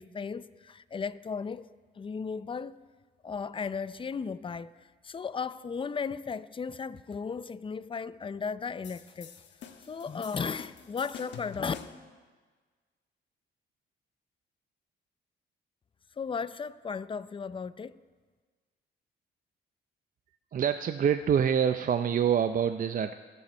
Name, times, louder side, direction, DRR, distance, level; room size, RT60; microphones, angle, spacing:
voice 1, 0.0-2.8 3.2-9.3 9.9-11.7 16.2-18.0, left 5 dB, 25° left, 0.5 m, -35 dB
sound 1, 8.8-12.1, left 8 dB, 65° left, 1.3 m, -47 dB
voice 2, 20.5-23.1, right 8 dB, 45° right, 0.5 m, -26 dB
25.5 x 8.6 x 4.4 m
cardioid pair, 90°, 20 cm